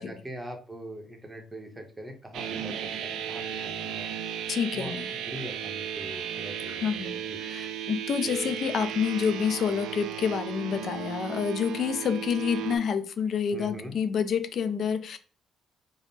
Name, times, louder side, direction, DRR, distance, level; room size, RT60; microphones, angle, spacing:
voice 1, 0.0-2.7 3.0-4.1 4.7-7.4 13.5-13.9, equal, 10° right, 0.7 m, -42 dB
sound 1, 2.3-12.8, right 9 dB, 85° right, 0.4 m, -35 dB
voice 2, 4.5-5.2 6.7-15.2, left 7 dB, 50° left, 0.3 m, -28 dB
3.5 x 2.0 x 4.0 m
cardioid pair, 160°, 0 cm